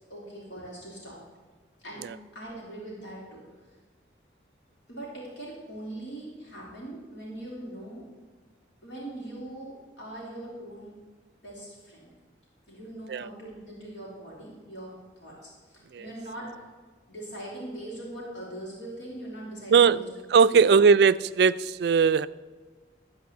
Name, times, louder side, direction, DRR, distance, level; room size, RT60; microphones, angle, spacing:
voice 1, 0.1-1.2 1.8-2.1 2.3-3.4 4.9-8.1 8.8-10.9 11.4-12.1 12.7-16.5 17.1-20.1 20.5-20.8, right 1 dB, 80° left, -5 dB, 3.4 m, -41 dB
voice 2, 20.3-22.3, right 5 dB, 60° right, 16 dB, 0.3 m, -19 dB
12.0 x 4.6 x 8.2 m, 1.4 s
head